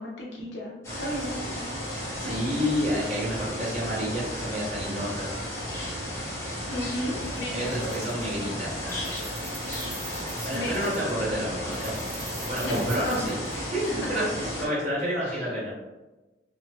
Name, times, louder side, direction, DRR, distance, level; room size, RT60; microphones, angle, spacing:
voice 1, 0.0-2.3 6.7-7.9 10.5-11.1 12.6-13.1 13.9-14.0 15.2-15.4, equal, 75° left, -4 dB, 0.8 m, -34 dB
sound 1, 0.8-14.7, equal, 15° left, 0.8 m, -34 dB
voice 2, 2.1-5.3 7.5-9.2 10.4-13.8 14.1-15.7, equal, 40° right, -8 dB, 1.2 m, -30 dB
Keys jangling, 7.2-7.4 7.7-8.4 8.7-11.1 11.7-13.9, right 3 dB, 80° right, 1.0 m, -44 dB
2.8 x 2.3 x 2.8 m, 1.1 s
head